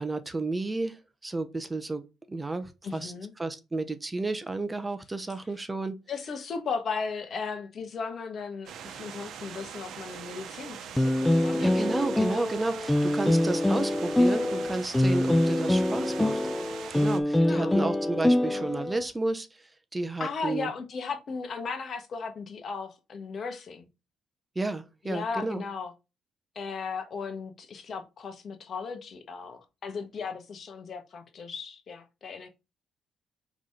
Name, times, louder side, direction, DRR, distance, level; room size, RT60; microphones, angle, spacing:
voice 1, 0.0-3.1 3.4-6.0 11.6-16.4 16.9-20.7 24.5-25.6, right 2 dB, 20° right, 0.8 m, -32 dB
voice 2, 2.8-3.3 6.1-11.9 17.4-17.8 18.4-18.7 20.2-23.9 25.0-25.9 26.5-32.5, left 5 dB, 50° left, 1.4 m, -36 dB
sound 1, 8.7-17.2, right 8 dB, 75° right, 0.9 m, -42 dB
sound 2, 11.0-19.1, left 1 dB, 10° left, 0.4 m, -25 dB
4.8 x 4.0 x 5.6 m
cardioid pair, 90°, 0 cm